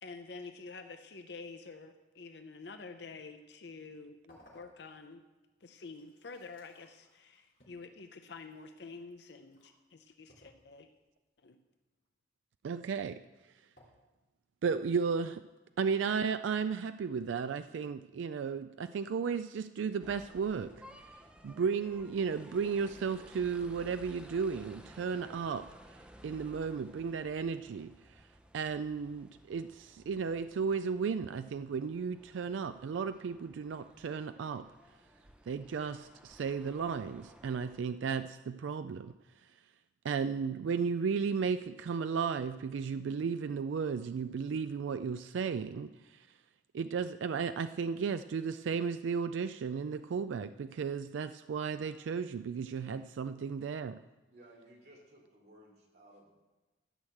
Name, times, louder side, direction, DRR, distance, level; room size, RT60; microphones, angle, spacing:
voice 1, 0.0-5.2 5.6-10.9 11.4-11.6, left 4 dB, 65° left, 7 dB, 0.6 m, -48 dB
sound 1, 4.3-5.2 5.7-9.7 10.3-11.0 13.8-13.9, left 1 dB, 50° left, 3.1 m, -64 dB
voice 2, 12.6-13.2 14.6-15.4 15.8-20.7 21.4-25.6 26.2-27.9 28.5-34.6 35.5-39.1 40.0-45.9 46.7-54.0, right 6 dB, 85° right, 11 dB, 0.3 m, -34 dB
sound 2, 20.0-37.8, equal, 5° right, 0.6 m, -56 dB
voice 3, 54.3-56.3, right 1 dB, 55° right, -1 dB, 3.2 m, -58 dB
13.0 x 6.3 x 7.8 m, 1.1 s
head